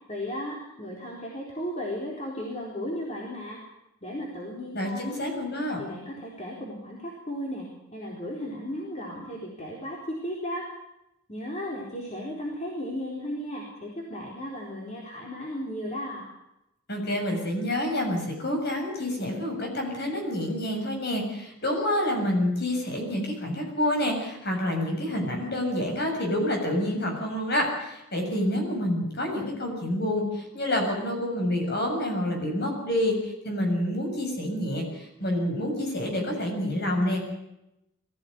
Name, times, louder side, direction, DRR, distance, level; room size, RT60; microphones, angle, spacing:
voice 1, 0.1-3.6 4.0-5.2 5.8-10.7 11.3-16.3, equal, 30° left, -3 dB, 4.1 m, -35 dB
voice 2, 4.7-5.8 16.9-37.2, left 1 dB, 50° left, 2 dB, 7.3 m, -28 dB
22.5 x 15.5 x 9.8 m, 0.87 s
head